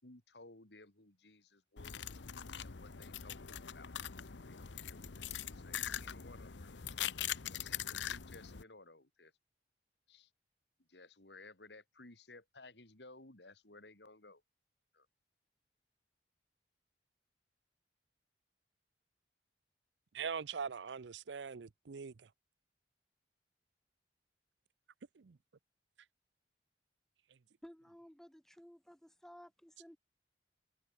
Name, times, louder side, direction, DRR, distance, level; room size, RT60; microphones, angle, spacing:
voice 1, 0.0-2.2 2.6-4.2 4.4-6.8 7.4-9.3 10.1-10.3 10.9-14.4 14.9-15.1, left 2 dB, 70° left, 3.5 m, -58 dB
sound 1, 1.8-8.6, left 9 dB, 90° left, 0.9 m, -42 dB
voice 2, 20.1-22.1 25.2-25.4, right 6 dB, 85° right, 0.6 m, -42 dB
voice 3, 27.6-30.0, equal, 5° left, 0.4 m, -56 dB
head